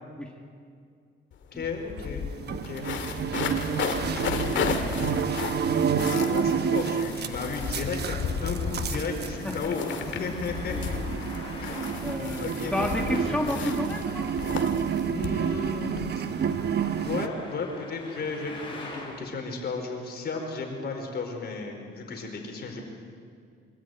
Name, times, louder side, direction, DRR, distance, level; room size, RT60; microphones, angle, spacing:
sound 1, 1.3-1.4 1.6-16.1, left 7 dB, 70° left, 2.1 m, -34 dB
voice 1, 1.5-2.9 6.1-9.9 10.2-10.7 11.6-11.9 12.4-13.4 15.1-16.1 17.0-22.8, left 4 dB, 55° left, 2 dB, 4.8 m, -34 dB
sound 2, 2.0-17.3, right 7 dB, 55° right, 1.1 m, -30 dB
voice 2, 2.1-2.5 3.0-3.7 4.5-5.5 9.4-9.6 10.7-10.8 12.0-14.4, left 1 dB, 5° left, 0 dB, 2.4 m, -33 dB
Traffic noise roadway noise, 4.8-19.2, left 2 dB, 25° left, 7.2 m, -46 dB
24.5 x 13.5 x 9.3 m, 2.2 s
cardioid pair, 90°, 20 cm